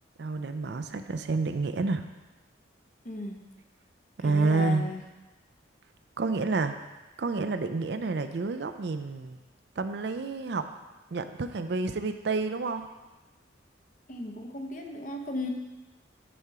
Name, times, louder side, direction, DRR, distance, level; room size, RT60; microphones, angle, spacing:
voice 1, 0.2-2.0 4.2-4.9 6.2-6.8 7.2-9.4 9.8-10.7 11.1-12.8, right 3 dB, 60° right, 9 dB, 0.4 m, -29 dB
voice 2, 3.0-3.4 4.2-5.0 14.1-15.5, left 2 dB, 40° left, 3 dB, 0.9 m, -35 dB
10.0 x 4.3 x 4.8 m, 1.1 s
head